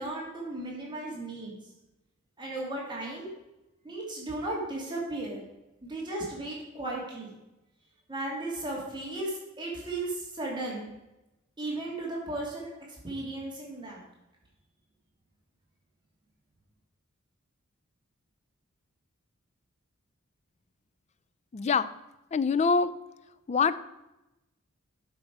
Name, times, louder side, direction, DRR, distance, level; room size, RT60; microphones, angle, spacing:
voice 1, 0.0-1.5 2.4-3.3 3.8-5.4 5.9-7.4 8.1-10.9 11.6-14.0, right 2 dB, 20° right, -3 dB, 2.0 m, -35 dB
voice 2, 21.5-21.9 22.3-22.9 23.5-23.8, left 5 dB, 35° left, 14 dB, 0.3 m, -24 dB
11.5 x 5.3 x 4.7 m, 0.95 s
head